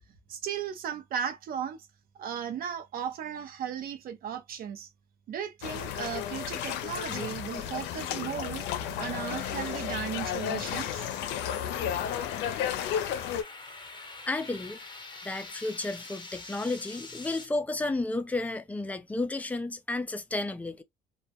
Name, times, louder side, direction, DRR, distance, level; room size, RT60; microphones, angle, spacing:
voice 1, 0.3-1.9 2.1-4.9 5.3-8.7 9.0-11.1, right 8 dB, 60° right, 0.6 m, -36 dB
sound 1, 5.6-13.4, left 9 dB, 85° left, 0.4 m, -33 dB
sound 2, 7.3-17.5, left 3 dB, 30° left, 0.8 m, -47 dB
voice 2, 14.2-14.8 15.2-20.8, left 2 dB, 10° left, 0.4 m, -32 dB
2.1 x 2.1 x 2.8 m
cardioid pair, 110°, 17 cm